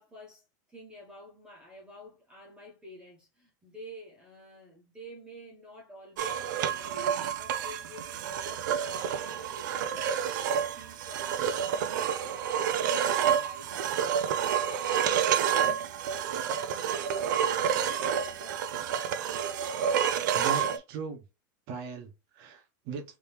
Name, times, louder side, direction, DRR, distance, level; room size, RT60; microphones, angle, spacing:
voice 1, 0.0-10.0 10.4-19.1, left 1 dB, 10° right, 1.1 m, -50 dB
sound 1, 6.2-20.8, right 8 dB, 65° right, 0.5 m, -29 dB
voice 2, 20.3-21.2 21.7-23.2, right 5 dB, 40° right, 1.1 m, -39 dB
3.6 x 3.0 x 2.8 m
supercardioid pair, 175°, 11 cm